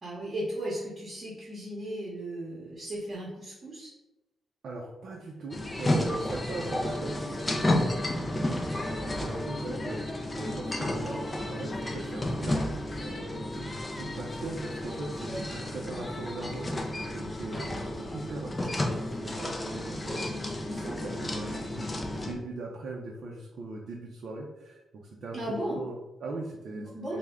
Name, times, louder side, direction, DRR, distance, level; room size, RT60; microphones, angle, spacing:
voice 1, 0.0-3.9 15.2-15.4 25.3-25.8 26.7-27.2, right 1 dB, 25° right, -6 dB, 0.8 m, -36 dB
voice 2, 4.6-25.4 25.7-27.2, right 2 dB, 55° right, -2 dB, 0.4 m, -40 dB
sound 1, 5.5-22.3, left 1 dB, 15° left, 0.4 m, -32 dB
3.3 x 2.1 x 3.5 m, 0.97 s
wide cardioid pair, 160°, 0 cm